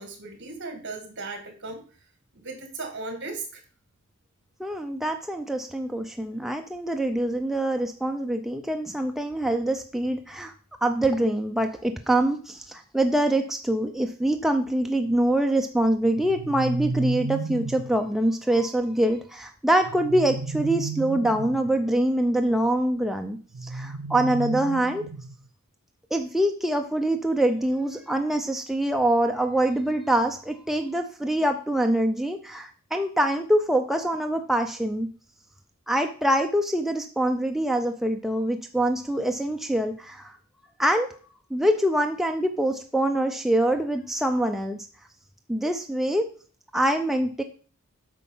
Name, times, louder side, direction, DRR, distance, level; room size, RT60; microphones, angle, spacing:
voice 1, 0.0-1.8 2.3-3.6, right 3 dB, 55° right, 5 dB, 2.1 m, -36 dB
voice 2, 4.6-10.5 10.8-25.0 26.1-35.1 35.9-40.4 40.8-41.2 41.5-44.8 45.5-46.3 46.7-47.4, right 1 dB, ahead, 4 dB, 0.6 m, -24 dB
sound 1, 16.1-18.0 19.8-21.7 23.5-25.5, right 3 dB, 80° right, 0.5 m, -33 dB
8.4 x 5.6 x 5.5 m, 0.41 s
head